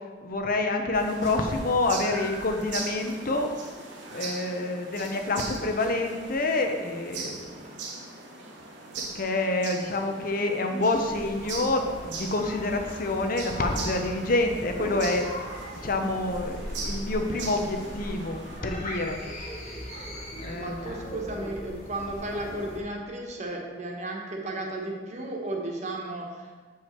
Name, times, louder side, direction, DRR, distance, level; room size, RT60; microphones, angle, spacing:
voice 1, 0.0-3.5 4.1-7.4 9.1-15.3 15.8-19.2 20.4-21.1, left 2 dB, 55° left, 4 dB, 0.8 m, -27 dB
sound 1, 0.9-18.6, right 3 dB, 80° right, 1.1 m, -40 dB
sound 2, 10.9-22.8, equal, 40° left, 1.7 m, -40 dB
voice 2, 20.5-26.6, right 1 dB, 40° right, 0 dB, 1.2 m, -34 dB
7.4 x 4.8 x 4.5 m, 1.4 s
head